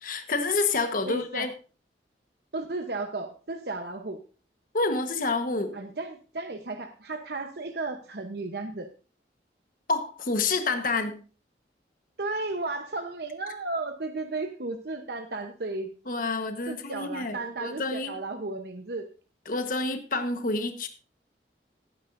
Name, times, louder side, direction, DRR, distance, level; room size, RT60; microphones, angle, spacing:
voice 1, 0.0-1.5 4.7-5.8 9.9-11.2 16.1-18.1 19.5-20.9, left 3 dB, 50° left, 7 dB, 1.2 m, -28 dB
voice 2, 1.0-1.5 2.5-4.2 5.7-8.9 12.2-15.9 16.7-19.1, right 3 dB, 60° right, 5 dB, 0.9 m, -34 dB
17.5 x 9.4 x 2.6 m, 0.36 s
head